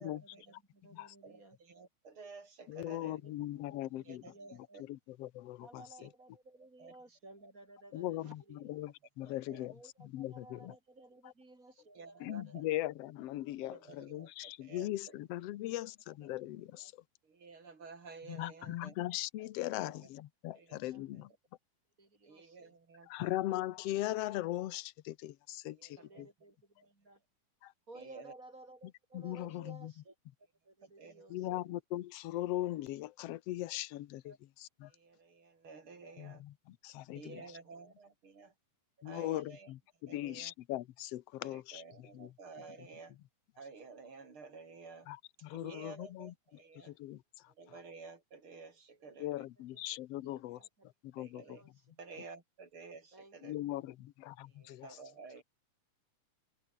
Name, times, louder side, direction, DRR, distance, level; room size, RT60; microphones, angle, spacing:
voice 1, 0.0-1.6 3.1-3.3 3.8-4.9 5.6-8.8 9.7-12.7 16.2-16.3 16.8-16.9 20.8-21.1 22.0-22.8 25.6-27.2 27.9-30.2 30.6-31.7 34.2-34.4 36.0-36.2 37.3-37.9 41.9-42.0 46.0-46.2 49.0-49.2 49.6-49.8 50.2-50.9 51.4-52.0 53.1-53.4, right 2 dB, 25° right, 5.4 m, -57 dB
voice 2, 1.2-3.2 4.1-4.6 6.0-6.1 6.8-6.9 9.2-9.7 12.0-12.6 13.6-14.9 17.2-18.9 19.8-19.9 20.5-20.8 22.2-23.3 25.8-26.3 28.0-28.3 31.0-31.2 34.9-36.4 37.1-38.5 39.1-39.7 40.1-40.5 41.4-43.1 43.6-45.1 45.5-46.9 47.6-49.4 51.2-51.6 52.0-53.6 54.6-55.4, right 4 dB, 45° right, 3.9 m, -52 dB
voice 3, 2.7-4.3 4.9-5.8 7.9-10.8 11.2-11.3 12.2-16.9 18.3-21.3 23.1-26.3 27.6-27.7 29.1-29.9 31.3-34.3 34.6-34.9 36.2-37.6 39.0-42.3 42.8-42.9 45.1-47.5 49.2-50.6 51.0-51.7 53.4-55.0, left 15 dB, 65° left, 1.7 m, -40 dB
omnidirectional pair, 3.5 m